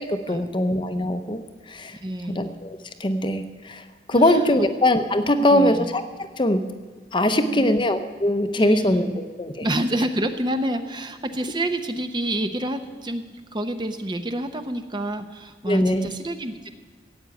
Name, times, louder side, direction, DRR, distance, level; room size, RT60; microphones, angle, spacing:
voice 1, 0.0-1.4 1.7-2.0 2.3-3.8 4.1-6.0 6.4-6.6 7.1-9.7 15.7-16.1, left 1 dB, 25° left, 8 dB, 0.7 m, -22 dB
voice 2, 2.0-2.5 4.1-4.4 5.5-5.9 7.3-7.8 8.6-9.2 9.6-16.7, right 1 dB, 25° right, 8 dB, 0.7 m, -28 dB
15.5 x 8.2 x 9.0 m, 1.4 s
head